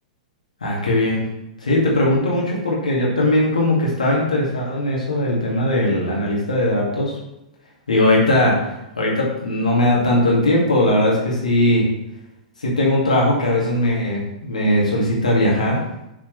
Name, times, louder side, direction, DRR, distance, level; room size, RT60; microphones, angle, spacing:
voice 1, 0.6-1.2 1.6-7.2 7.9-11.8 12.6-15.8, left 1 dB, 85° left, -4 dB, 2.3 m, -19 dB
6.6 x 6.1 x 3.3 m, 0.88 s
figure-of-eight pair, 105°, 4 cm